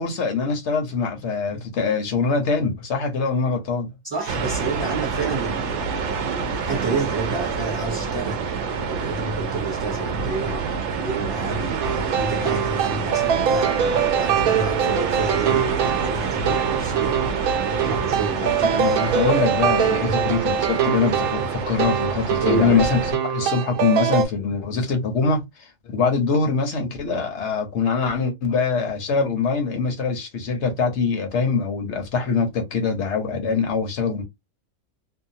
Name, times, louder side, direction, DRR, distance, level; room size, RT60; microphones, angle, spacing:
voice 1, 0.0-3.9 18.4-23.0 23.3-34.2, left 4 dB, 60° left, 1.0 m, -23 dB
voice 2, 4.0-10.6 10.9-17.2 17.6-18.7 20.0-20.3 22.4-22.8, right 3 dB, 20° right, 0.9 m, -30 dB
sound 1, 4.3-23.1, right 5 dB, 65° right, 0.8 m, -27 dB
sound 2, 11.8-24.3, right 8 dB, 90° right, 1.1 m, -23 dB
2.7 x 2.2 x 2.7 m
omnidirectional pair, 1.5 m